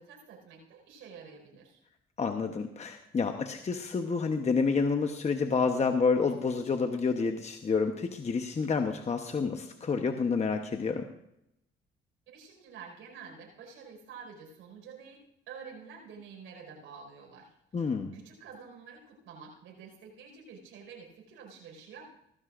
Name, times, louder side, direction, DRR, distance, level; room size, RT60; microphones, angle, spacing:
voice 1, 0.0-1.8 12.3-15.2 15.5-17.5 18.1-22.2, right 6 dB, 90° right, 1 dB, 5.1 m, -49 dB
voice 2, 2.2-11.1 17.7-18.1, left 5 dB, 35° left, 5 dB, 1.0 m, -29 dB
18.5 x 15.0 x 2.6 m, 0.80 s
cardioid pair, 90°, 20 cm